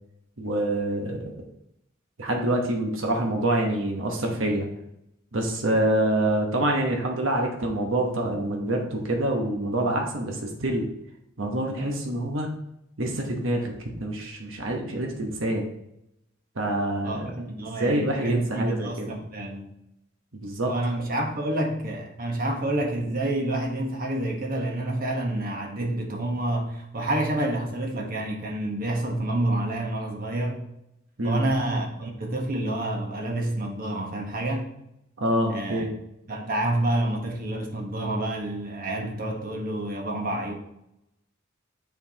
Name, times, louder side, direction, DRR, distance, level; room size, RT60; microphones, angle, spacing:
voice 1, 0.4-1.3 2.2-4.7 5.3-10.9 11.4-12.5 13.0-15.6 16.6-17.3 17.8-19.1 20.3-20.7 31.2-31.4 35.2-35.9, right 1 dB, 70° right, 1 dB, 1.1 m, -26 dB
voice 2, 17.0-19.7 20.6-30.6 31.2-34.7 35.5-35.9 36.3-40.5, right 1 dB, 45° right, 1 dB, 1.2 m, -28 dB
7.7 x 4.7 x 2.9 m, 0.80 s
head